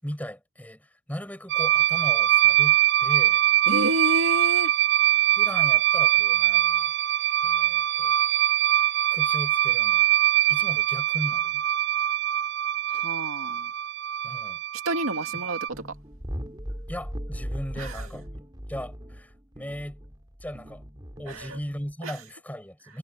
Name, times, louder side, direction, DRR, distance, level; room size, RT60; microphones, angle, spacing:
voice 1, 0.0-3.4 5.3-6.9 7.4-8.1 9.1-10.1 10.5-11.6 14.2-14.6 16.9-20.0 20.4-20.8 21.2-23.0, equal, 5° left, 7.4 m, -37 dB
sound 1, 1.5-15.7, right 13 dB, 50° right, 0.4 m, -23 dB
voice 2, 3.7-4.7 12.9-13.7 14.8-15.6 17.8-18.1 21.3-21.6 22.0-22.1, right 1 dB, 75° right, 2.3 m, -29 dB
sound 2, 15.7-21.9, equal, 20° right, 4.5 m, -38 dB
head